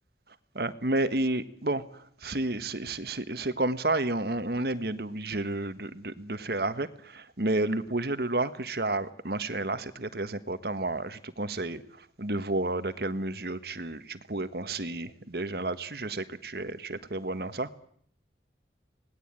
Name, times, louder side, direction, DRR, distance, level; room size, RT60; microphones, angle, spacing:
voice 1, 0.5-17.7, right 2 dB, 60° right, 11 dB, 1.6 m, -31 dB
25.5 x 19.5 x 9.0 m, 0.64 s
head